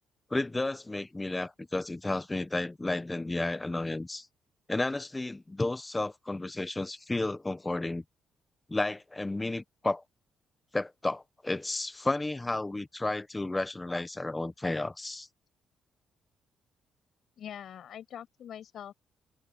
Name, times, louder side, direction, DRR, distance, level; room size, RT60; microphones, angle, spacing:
voice 1, 0.3-4.3 4.7-8.0 8.7-10.0 10.7-15.3, left 2 dB, 15° left, 1.3 m, -32 dB
voice 2, 17.4-18.9, left 9 dB, 65° left, 7.8 m, -43 dB
cardioid pair, 90°, 0 cm